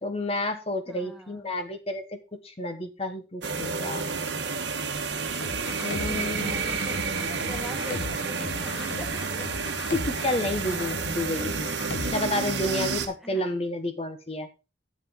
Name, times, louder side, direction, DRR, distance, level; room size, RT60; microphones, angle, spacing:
voice 1, 0.0-4.0 5.8-6.8 9.9-11.7 12.1-14.5, left 1 dB, 30° left, 8 dB, 1.1 m, -30 dB
voice 2, 0.9-1.5 5.9-9.5 13.2-13.5, equal, ahead, 1 dB, 1.8 m, -42 dB
sound 1, 3.4-13.1, right 4 dB, 65° right, 1.2 m, -30 dB
sound 2, 5.4-12.2, left 3 dB, 70° left, 0.8 m, -38 dB
9.9 x 7.7 x 3.7 m, 0.30 s
head